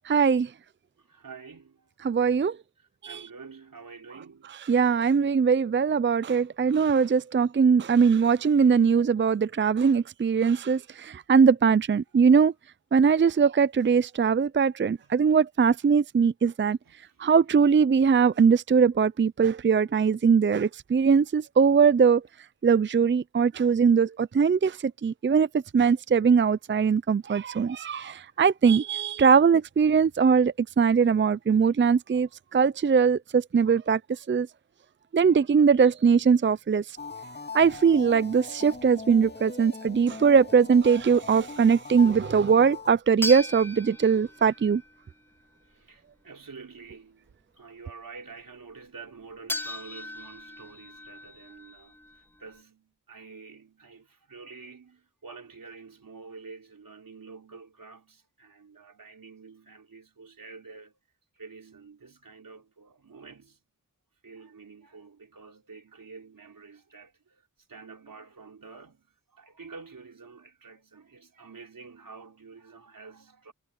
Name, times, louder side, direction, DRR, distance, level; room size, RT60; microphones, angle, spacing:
voice 1, 0.1-0.5 2.0-2.6 3.0-3.3 4.5-12.5 12.9-16.8 17.2-22.2 22.6-34.5 35.1-36.8 37.5-44.8, right 6 dB, 35° right, 0.5 m, -21 dB
voice 2, 1.0-1.9 2.8-4.6 16.8-17.2 28.0-28.1 37.2-37.3 39.6-39.7 40.0-40.2 45.6-61.0 61.4-63.6 64.2-73.5, right 4 dB, 90° right, 4.0 m, -48 dB
sound 1, 37.0-42.9, left 3 dB, 30° left, 2.4 m, -41 dB
sound 2, 43.2-45.2 49.5-52.6, left 1 dB, 5° left, 3.5 m, -37 dB
wide cardioid pair, 50°, 33 cm